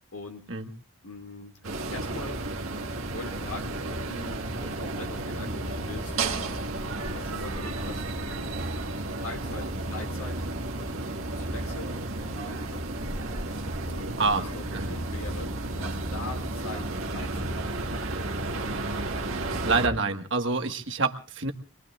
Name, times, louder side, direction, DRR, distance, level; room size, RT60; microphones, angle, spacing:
voice 1, 0.1-0.4 1.0-1.6 1.9-2.5 3.1-6.7 7.1-10.5 10.8-12.0 12.3-12.9 13.9-15.5 15.8-18.2, left 2 dB, 85° left, 2 dB, 2.2 m, -42 dB
sound 1, 1.6-19.9, right 2 dB, 80° right, 1.9 m, -32 dB
voice 2, 19.6-21.5, right 3 dB, 60° right, 6 dB, 1.5 m, -27 dB
25.5 x 22.0 x 2.4 m, 0.36 s
head